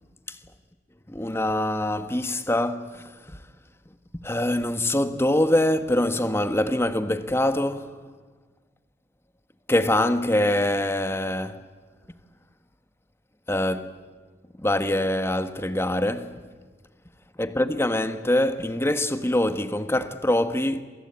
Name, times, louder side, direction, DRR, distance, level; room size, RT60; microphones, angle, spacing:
voice 1, 1.1-3.4 4.2-8.0 9.7-11.7 13.5-14.0 14.6-16.4 17.4-20.8, left 1 dB, 15° left, 1.3 m, -24 dB
28.0 x 23.5 x 8.6 m
head